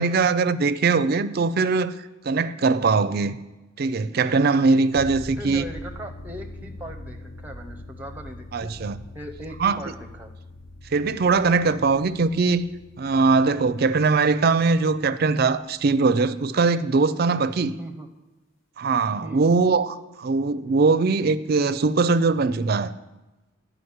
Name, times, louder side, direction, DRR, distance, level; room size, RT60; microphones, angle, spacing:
voice 1, 0.0-1.9 2.2-3.4 3.8-5.6 8.5-9.0 9.6-9.8 10.9-12.6 13.0-17.8 18.8-22.9, right 4 dB, 50° right, 0.4 m, -21 dB
sound 1, 4.9-15.7, left 1 dB, 65° left, 0.9 m, -42 dB
voice 2, 5.4-8.7 9.1-10.3 17.8-18.1 19.2-19.4, equal, 10° right, 0.6 m, -39 dB
11.0 x 5.0 x 8.0 m
head